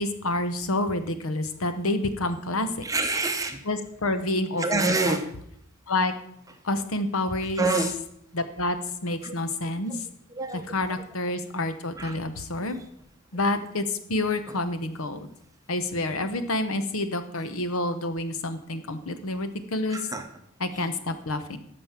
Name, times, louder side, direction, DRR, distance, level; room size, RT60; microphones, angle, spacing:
voice 1, 0.0-2.7 3.7-5.2 5.9-6.1 6.6-7.6 8.3-8.8 9.0-10.0 10.7-12.8 13.3-15.3 15.7-20.0 20.6-21.6, left 2 dB, 85° left, 10 dB, 1.0 m, -28 dB
voice 2, 2.8-3.6 4.6-5.3 7.6-7.9 9.2-9.4 10.3-11.1 12.0-12.2 14.5-14.6 19.9-20.3 20.7-20.9, right 3 dB, 15° right, 6 dB, 0.9 m, -27 dB
13.5 x 5.3 x 5.8 m, 0.72 s
head